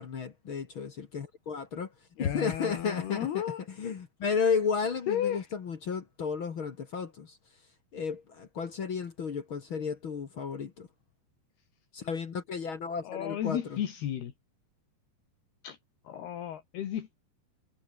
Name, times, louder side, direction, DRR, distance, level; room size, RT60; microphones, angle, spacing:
voice 1, 0.0-1.9 2.2-7.4 7.9-10.9 11.9-13.8, left 5 dB, 50° left, 1.5 m, -33 dB
voice 2, 2.2-3.6 5.1-5.5 13.0-14.3 15.6-15.8 16.1-17.2, left 10 dB, 70° left, 3.9 m, -33 dB
omnidirectional pair, 4.9 m